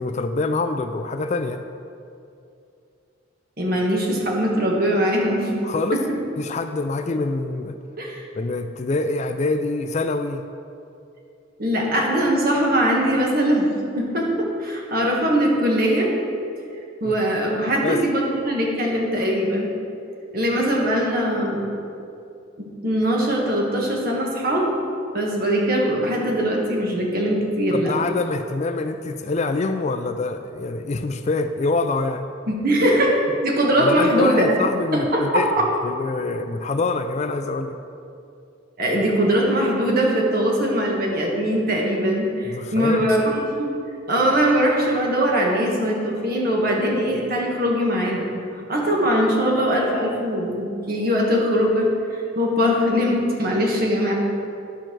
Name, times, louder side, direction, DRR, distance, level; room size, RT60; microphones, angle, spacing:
voice 1, 0.0-1.6 5.6-6.0 6.4-7.8 8.3-10.4 17.0-17.2 17.8-18.0 27.7-32.3 33.8-35.5 35.8-37.8 42.4-43.1, left 3 dB, 35° left, 8 dB, 0.3 m, -25 dB
voice 2, 3.6-5.5 5.9-6.0 8.0-8.2 11.6-13.7 14.0-16.1 17.0-19.7 20.3-21.6 22.6-24.8 25.1-27.9 32.5-33.1 33.4-34.4 34.9-35.7 38.8-43.7 44.1-48.3 48.7-54.1, equal, 45° right, -1 dB, 1.6 m, -21 dB
11.5 x 4.5 x 6.1 m, 2.5 s
head